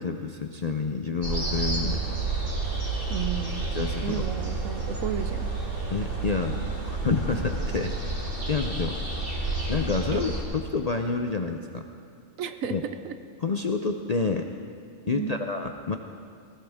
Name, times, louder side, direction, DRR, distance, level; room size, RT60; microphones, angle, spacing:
voice 1, 0.0-2.0 3.7-4.3 5.9-6.6 6.8-8.2 8.5-9.0 9.7-11.8 12.7-12.8 13.4-14.5 15.1-16.0, left 4 dB, 55° left, 4 dB, 0.4 m, -28 dB
sound 1, 1.2-10.4, right 3 dB, 45° right, 2.3 m, -30 dB
voice 2, 3.1-3.6 4.0-5.5 10.1-10.2 12.4-13.1 15.1-15.4, right 7 dB, 80° right, 10 dB, 1.2 m, -33 dB
19.0 x 15.5 x 3.5 m, 2.4 s
omnidirectional pair, 1.4 m